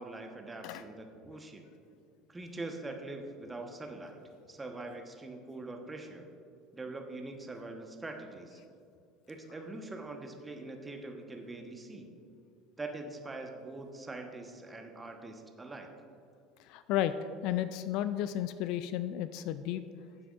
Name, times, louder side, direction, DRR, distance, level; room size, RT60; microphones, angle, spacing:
voice 1, 0.0-1.7 2.3-4.2 4.5-6.3 6.7-8.6 9.3-12.0 12.8-15.9, right 2 dB, 15° right, 4 dB, 1.1 m, -43 dB
voice 2, 16.7-17.1 17.4-19.8, left 12 dB, 55° left, 13 dB, 0.3 m, -33 dB
15.5 x 7.5 x 2.5 m, 2.5 s
figure-of-eight pair, 65°, 0 cm